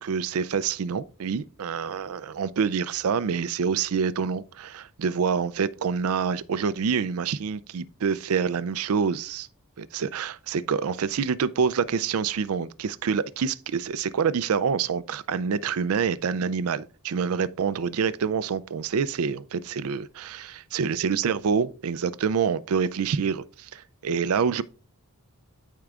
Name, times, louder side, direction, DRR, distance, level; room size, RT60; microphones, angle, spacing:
voice 1, 0.0-9.5 9.8-24.6, right 6 dB, 80° right, 0.4 m, -27 dB
13.5 x 4.6 x 2.4 m
head